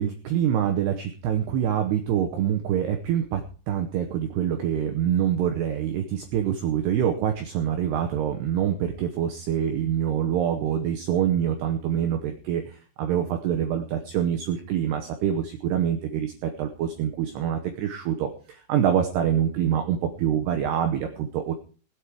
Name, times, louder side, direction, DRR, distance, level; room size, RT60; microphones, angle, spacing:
voice 1, 0.0-3.4 3.7-21.5, right 9 dB, 80° right, 5 dB, 2.4 m, -25 dB
19.0 x 8.5 x 4.7 m, 0.37 s
omnidirectional pair, 5.9 m